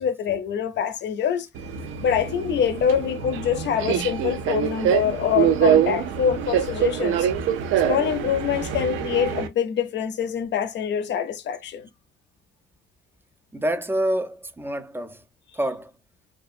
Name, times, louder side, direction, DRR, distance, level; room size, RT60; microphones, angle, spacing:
voice 1, 0.0-1.5 2.0-7.3 7.8-11.9, left 8 dB, 65° left, 0.5 m, -25 dB
Subway metro underground, 1.6-9.5, right 9 dB, 85° right, 0.5 m, -24 dB
voice 2, 13.5-15.2 15.5-15.9, right 1 dB, 10° right, 0.4 m, -27 dB
2.6 x 2.4 x 2.4 m
cardioid pair, 90°, 20 cm